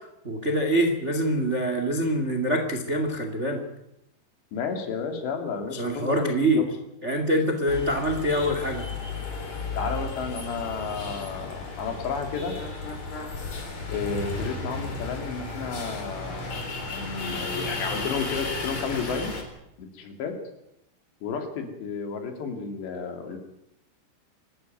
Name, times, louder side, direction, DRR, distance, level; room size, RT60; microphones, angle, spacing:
voice 1, 0.2-3.6 5.7-6.6 7.0-8.8, right 1 dB, 55° right, 5 dB, 0.7 m, -25 dB
voice 2, 4.5-6.7 9.8-12.6 13.9-19.3 19.8-20.4 21.2-23.4, left 5 dB, 70° left, 5 dB, 4.8 m, -32 dB
sound 1, 7.7-19.4, left 3 dB, 40° left, 4.8 m, -34 dB
26.0 x 13.0 x 9.2 m, 0.84 s
omnidirectional pair, 5.4 m